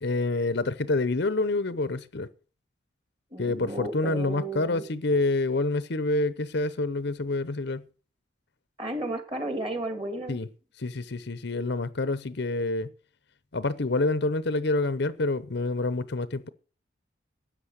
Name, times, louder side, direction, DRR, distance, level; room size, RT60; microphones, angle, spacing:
voice 1, 0.0-2.3 3.4-7.8 10.3-10.5 10.8-12.9 13.5-16.5, left 2 dB, 55° left, 0.8 m, -27 dB
voice 2, 3.3-4.8 8.8-10.4, right 1 dB, 25° right, 2.8 m, -33 dB
13.0 x 8.9 x 6.6 m
head